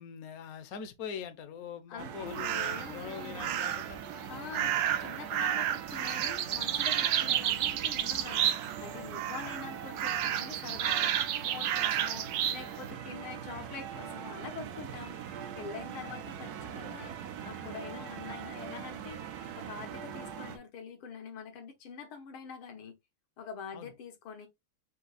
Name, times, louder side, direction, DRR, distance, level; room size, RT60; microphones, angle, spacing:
voice 1, 0.0-4.0 4.5-4.7 5.5-5.6 7.2-7.4 9.4-9.5 12.2-12.3 16.0-16.2 20.2-20.3 23.7-23.9, left 7 dB, 60° left, 1.0 m, -43 dB
voice 2, 1.9-3.6 4.3-15.2 15.6-17.2 17.5-19.2 19.6-23.0 23.4-24.5, left 5 dB, 85° left, 2.0 m, -45 dB
sound 1, 2.0-20.6, right 8 dB, 65° right, 1.0 m, -42 dB
sound 2, 2.3-2.9 3.4-4.0 4.5-8.9 9.1-9.6 10.0-12.6, right 10 dB, 90° right, 0.8 m, -31 dB
4.5 x 2.8 x 3.9 m
omnidirectional pair, 2.2 m